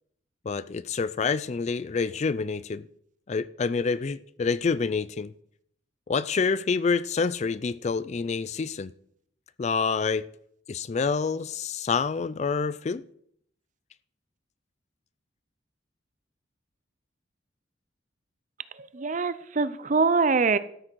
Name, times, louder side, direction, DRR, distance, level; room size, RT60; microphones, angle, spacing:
voice 1, 0.5-2.9 3.3-5.3 6.1-8.9 9.6-10.2 10.7-13.0, left 5 dB, 35° left, 0.4 m, -27 dB
voice 2, 18.8-20.6, right 4 dB, 40° right, 0.6 m, -24 dB
13.0 x 6.3 x 6.2 m
head